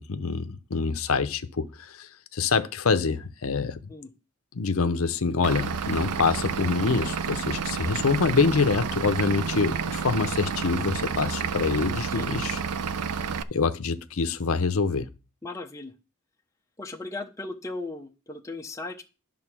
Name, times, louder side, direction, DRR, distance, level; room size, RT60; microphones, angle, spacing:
voice 1, 0.0-3.9 4.5-12.6 13.5-15.1, left 4 dB, 65° left, 0.7 m, -26 dB
Vehicle / Engine, 5.4-13.4, right 6 dB, 90° right, 0.5 m, -30 dB
voice 2, 15.4-15.9 16.8-19.0, left 2 dB, 15° left, 0.7 m, -37 dB
11.0 x 3.8 x 6.0 m
head